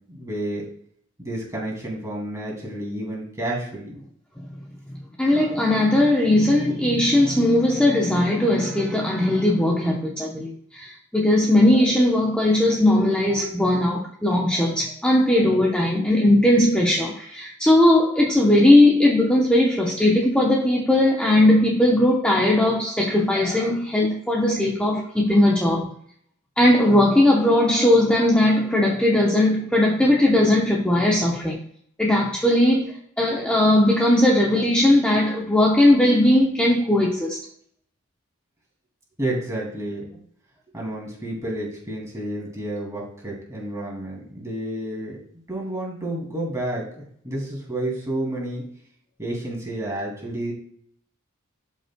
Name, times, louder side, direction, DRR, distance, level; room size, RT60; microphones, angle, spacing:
voice 1, 0.1-0.6 1.2-3.9 39.2-40.2 40.7-45.2 45.5-48.6 49.2-50.5, right 1 dB, 15° right, -2 dB, 2.4 m, -30 dB
voice 2, 5.2-25.9 26.6-31.6 32.0-37.4, left 1 dB, 5° left, -3 dB, 0.8 m, -19 dB
12.5 x 5.4 x 2.2 m, 0.63 s
head